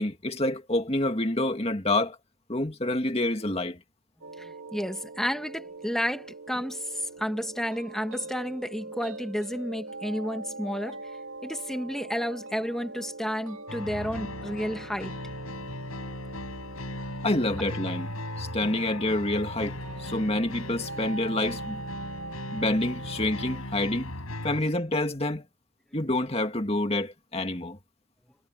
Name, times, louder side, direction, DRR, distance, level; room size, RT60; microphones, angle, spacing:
voice 1, 0.0-2.2 2.5-3.8 17.2-21.8 22.5-24.1 24.4-25.4 25.9-27.8, left 1 dB, 30° left, 2.2 m, -28 dB
sound 1, 4.2-23.6, right 2 dB, 80° right, 2.3 m, -42 dB
voice 2, 4.4-11.0 11.4-15.1, equal, ahead, 1.8 m, -31 dB
sound 2, 13.7-24.6, left 1 dB, 90° left, 7.5 m, -38 dB
head